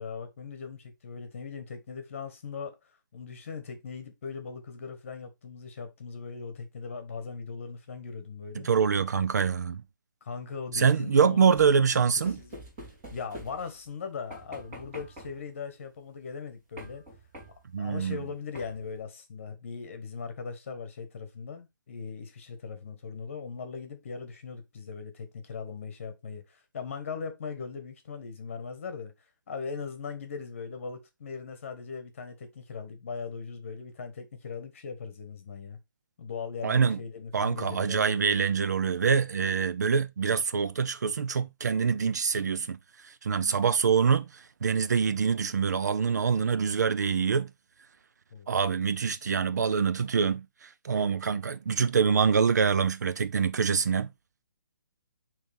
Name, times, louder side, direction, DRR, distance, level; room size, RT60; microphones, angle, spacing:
voice 1, 0.0-2.8 3.1-8.7 10.2-12.6 13.1-17.0 17.8-29.1 29.5-35.8 36.2-38.4 48.3-48.5, left 5 dB, 35° left, 1.3 m, -39 dB
voice 2, 8.6-9.8 10.7-12.4 17.7-18.2 36.6-37.0 37.3-42.8 43.0-47.5 48.5-54.1, right 6 dB, 55° right, 0.5 m, -25 dB
sound 1, 11.5-13.9 14.3-15.5 16.8-17.8 18.5-19.0, equal, 15° right, 2.8 m, -46 dB
9.0 x 3.3 x 3.4 m
hypercardioid pair, 175°, 11 cm